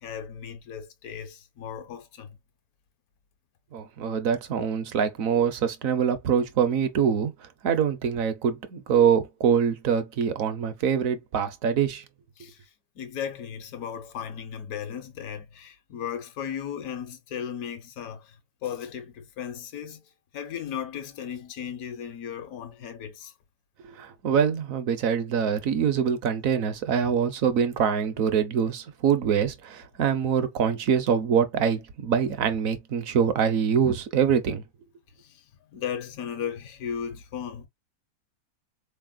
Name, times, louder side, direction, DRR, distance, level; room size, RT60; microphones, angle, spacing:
voice 1, 0.0-2.4 12.4-12.7 13.0-18.4 18.6-20.1 20.3-23.3 35.1-35.5 35.7-37.7, left 8 dB, 75° left, 1.3 m, -36 dB
voice 2, 3.7-7.3 7.6-12.0 23.9-34.6, right 7 dB, 70° right, 1.1 m, -24 dB
4.1 x 3.3 x 2.3 m
omnidirectional pair, 1.6 m